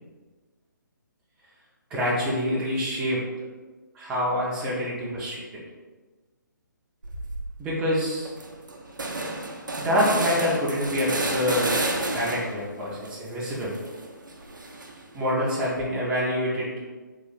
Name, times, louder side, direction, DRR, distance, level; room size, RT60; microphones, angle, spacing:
voice 1, 1.9-3.2 3.9-5.4 7.6-8.3 9.8-11.7 12.1-13.7 15.1-16.7, equal, 10° right, -6 dB, 0.4 m, -26 dB
sound 1, 7.0-7.5 7.9-8.0 8.2-12.7 13.0-15.2, right 2 dB, 70° right, 0.5 m, -31 dB
3.1 x 2.4 x 3.9 m, 1.3 s
figure-of-eight pair, 140°, 11 cm